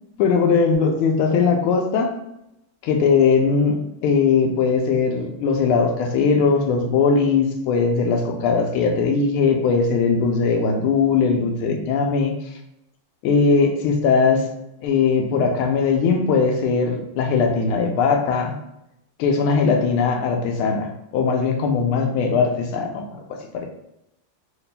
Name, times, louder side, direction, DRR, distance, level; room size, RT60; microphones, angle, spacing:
voice 1, 0.2-2.1 2.8-12.5 13.2-14.4 14.8-18.5 19.2-23.1 23.5-23.7, left 5 dB, 90° left, 3 dB, 1.5 m, -20 dB
3.7 x 2.2 x 4.0 m, 0.84 s
omnidirectional pair, 2.2 m